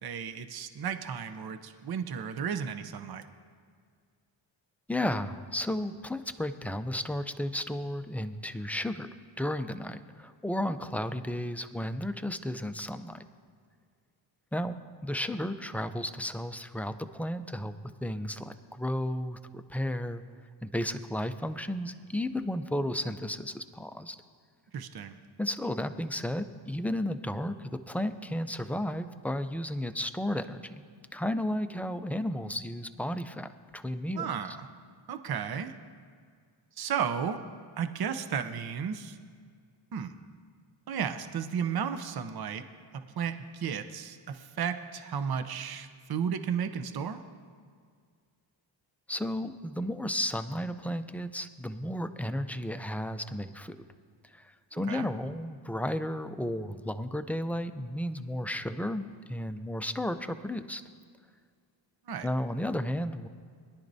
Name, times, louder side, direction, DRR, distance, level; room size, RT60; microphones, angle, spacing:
voice 1, 0.0-3.2 24.7-25.2 34.1-34.7 35.1-35.7 36.8-37.4 37.8-39.2 39.9-40.1 40.9-42.6 42.9-47.2 54.9-55.1 62.1-62.3, right 7 dB, 50° right, 9 dB, 0.7 m, -33 dB
voice 2, 4.9-9.1 9.4-13.2 14.5-14.8 15.0-17.7 18.0-20.2 20.6-24.2 25.4-30.8 31.1-34.3 49.1-53.8 54.2-60.8 62.2-63.3, left 1 dB, 5° left, 9 dB, 0.4 m, -33 dB
21.5 x 11.5 x 2.7 m, 2.1 s
wide cardioid pair, 125°, 47 cm